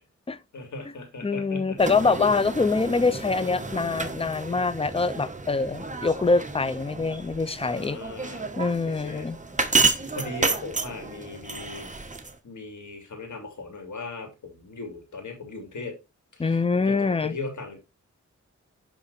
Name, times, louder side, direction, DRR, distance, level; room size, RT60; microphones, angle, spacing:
voice 1, 0.5-1.8 7.6-8.5 8.9-9.3 10.1-11.9 12.4-16.0 16.3-18.0, left 3 dB, 75° left, 3.5 m, -38 dB
voice 2, 1.2-8.0 8.6-9.4 16.4-17.4, left 4 dB, 20° left, 0.6 m, -24 dB
sound 1, 1.8-12.4, right 4 dB, 25° right, 1.3 m, -31 dB
11.0 x 3.9 x 4.2 m
wide cardioid pair, 90°, 30 cm